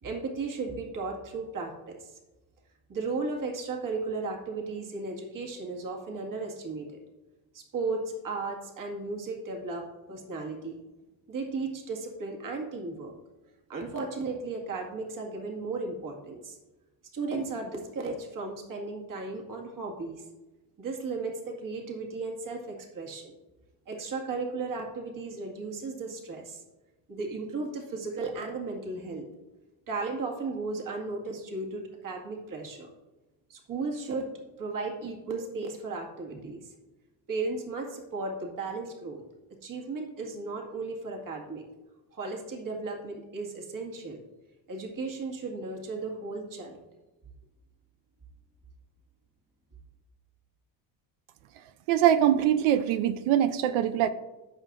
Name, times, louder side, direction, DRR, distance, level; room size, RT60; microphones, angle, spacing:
voice 1, 0.0-2.2 2.9-7.0 7.5-10.8 11.3-13.1 13.7-16.6 17.1-20.2 20.8-23.3 23.9-26.6 27.1-29.3 29.9-32.9 33.5-34.3 34.6-36.7 37.3-39.2 39.6-41.6 42.1-44.2 44.7-46.8, right 3 dB, 40° right, 0 dB, 2.0 m, -35 dB
voice 2, 51.9-54.1, right 10 dB, 75° right, 12 dB, 0.6 m, -23 dB
15.0 x 5.7 x 2.6 m, 1.1 s
supercardioid pair, 85°, 49 cm